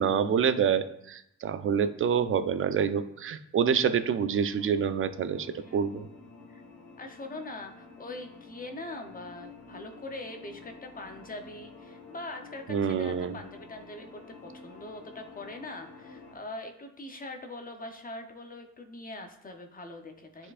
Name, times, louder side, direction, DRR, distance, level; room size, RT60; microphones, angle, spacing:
voice 1, 0.0-6.1 12.7-13.4, right 7 dB, 45° right, 11 dB, 0.5 m, -27 dB
sound 1, 4.3-16.3, left 4 dB, 80° left, 1.4 m, -50 dB
voice 2, 5.6-6.1 6.5-6.6 7.0-20.5, left 2 dB, 30° left, 4 dB, 0.8 m, -42 dB
9.7 x 4.4 x 2.5 m, 0.77 s
cardioid pair, 90°, 30 cm